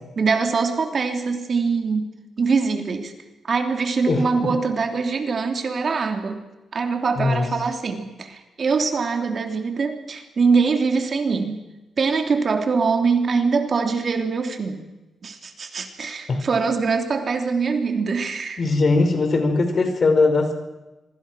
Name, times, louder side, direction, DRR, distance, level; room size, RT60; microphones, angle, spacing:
voice 1, 0.2-3.1 3.4-6.4 6.7-11.6 12.0-14.8 15.2-18.6, right 4 dB, 45° right, 5 dB, 3.1 m, -23 dB
voice 2, 4.1-4.5 7.1-7.5 16.3-16.4 18.6-20.5, left 3 dB, 45° left, 7 dB, 5.0 m, -20 dB
26.0 x 24.0 x 6.3 m, 1.0 s
cardioid pair, 100°, 0 cm